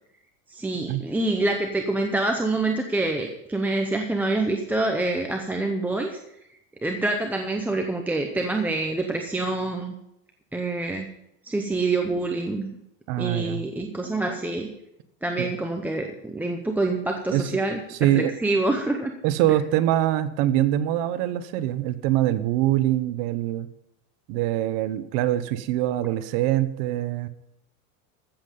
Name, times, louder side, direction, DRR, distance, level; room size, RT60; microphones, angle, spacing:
voice 1, 0.5-6.2 6.8-9.9 10.5-11.1 11.4-12.7 13.2-14.7 15.2-19.1, right 2 dB, 5° right, 3 dB, 0.6 m, -26 dB
voice 2, 13.1-13.6 15.4-15.5 17.3-17.5 17.9-18.3 19.2-23.7 24.3-27.3, right 13 dB, 55° right, 12 dB, 1.0 m, -24 dB
14.5 x 7.7 x 5.3 m, 0.81 s
supercardioid pair, 145°, 46 cm